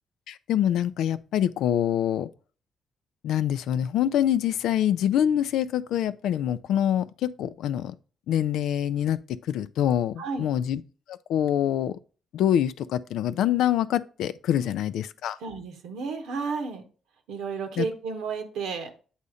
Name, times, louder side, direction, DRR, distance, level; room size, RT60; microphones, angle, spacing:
voice 1, 0.3-2.3 3.2-7.9 8.3-9.2 9.5-10.8 11.1-12.0 12.3-15.4 17.8-17.9, left 10 dB, 80° left, 0.3 m, -25 dB
voice 2, 10.2-10.5 14.6-14.8 15.4-16.8 17.3-18.9, right 5 dB, 80° right, 1.1 m, -32 dB
8.1 x 2.8 x 4.9 m
supercardioid pair, 65°, 0 cm